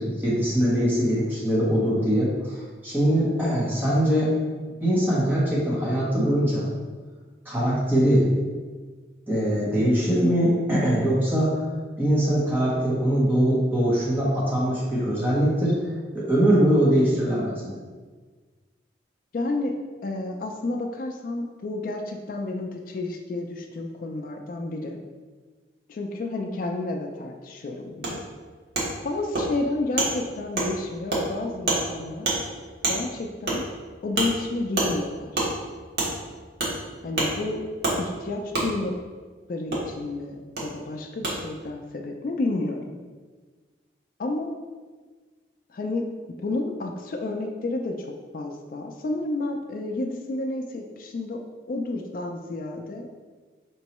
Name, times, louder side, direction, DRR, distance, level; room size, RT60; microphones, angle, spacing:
voice 1, 0.0-4.3 4.8-6.7 7.4-8.3 9.3-11.6 12.0-15.8 16.1-17.7, equal, 10° right, -7 dB, 0.9 m, -22 dB
voice 2, 19.3-25.0 25.9-28.2 29.0-32.3 32.9-33.7 34.0-35.4 37.0-37.6 38.0-39.0 39.5-43.0 44.2-44.5 45.7-46.1 46.4-51.4 51.7-53.1, left 2 dB, 50° left, 3 dB, 0.3 m, -30 dB
Wood, 28.0-28.1 28.7-28.9 29.3-29.5 30.0-30.1 30.6-30.7 31.1-31.2 31.7-31.8 32.2-32.4 32.8-33.0 33.5-33.6 34.2-34.3 34.8-34.9 35.3-35.5 36.0-36.1 36.6-36.7 37.2-37.3 37.8-38.0 38.5-38.7 39.7-39.8 40.6-40.7 41.2-41.3, right 2 dB, 60° right, 1.1 m, -25 dB
4.4 x 3.0 x 3.0 m, 1.4 s
head